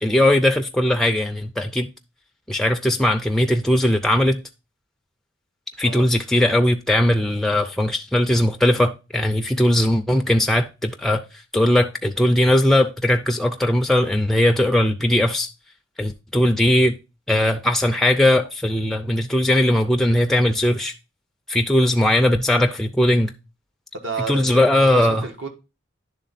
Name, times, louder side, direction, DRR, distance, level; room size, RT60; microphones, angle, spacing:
voice 1, 0.0-1.9 2.5-4.4 5.8-11.2 11.5-15.5 16.0-17.0 17.3-20.9 21.5-23.3 24.3-25.2, left 1 dB, ahead, 0.3 m, -19 dB
voice 2, 23.9-25.5, right 3 dB, 80° right, 1.4 m, -31 dB
10.0 x 3.5 x 4.1 m
head